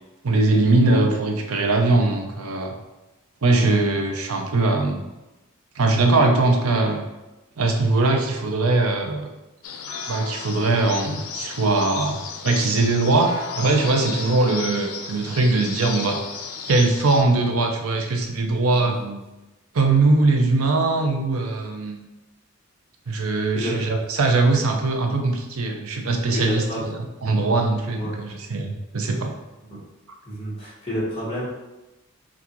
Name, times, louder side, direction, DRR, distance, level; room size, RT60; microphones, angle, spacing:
voice 1, 0.2-2.7 3.4-5.1 5.8-7.0 7.6-9.3 10.1-12.2 12.4-16.2 16.7-19.0 19.7-22.0 23.1-29.3, right 3 dB, 80° right, 3 dB, 0.6 m, -21 dB
sound 1, 9.6-17.2, left 5 dB, 85° left, 0.5 m, -34 dB
voice 2, 18.8-19.2 23.1-23.3 23.5-23.8 26.3-26.9 27.9-28.2 29.7-29.8 30.2-31.4, equal, 30° left, -7 dB, 1.4 m, -29 dB
5.9 x 2.4 x 3.0 m, 1.0 s
head